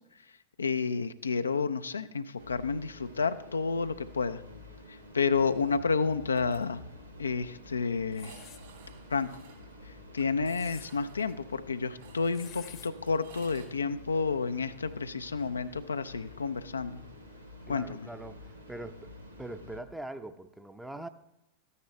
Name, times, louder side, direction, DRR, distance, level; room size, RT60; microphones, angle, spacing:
voice 1, 0.6-4.4 4.9-6.8 7.2-8.3 9.1-9.3 9.8-17.0 17.7-18.1, left 5 dB, 75° left, 11 dB, 0.4 m, -30 dB
sound 1, 2.4-19.8, left 1 dB, 90° right, 1.2 m, -49 dB
sound 2, 6.1-6.6 6.9-7.0 7.3-7.4 8.1-13.7, right 6 dB, 60° right, 2.8 m, -56 dB
sound 3, 8.1-8.6 10.2-10.9 12.3-12.9, left 10 dB, 35° left, 0.8 m, -49 dB
voice 2, 17.7-19.1 19.4-21.1, right 1 dB, 5° right, 9 dB, 0.6 m, -42 dB
13.0 x 9.6 x 3.1 m, 0.88 s
figure-of-eight pair, 90°, 0 cm